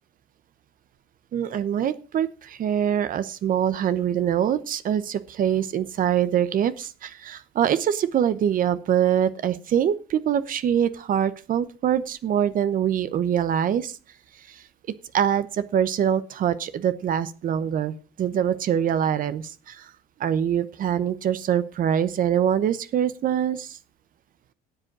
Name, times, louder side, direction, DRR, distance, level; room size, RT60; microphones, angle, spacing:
voice 1, 1.3-14.0 14.5-14.6 15.1-19.9 20.2-23.8, right 9 dB, 55° right, 13 dB, 0.9 m, -24 dB
12.5 x 7.7 x 6.1 m, 0.36 s
cardioid pair, 110°, 17 cm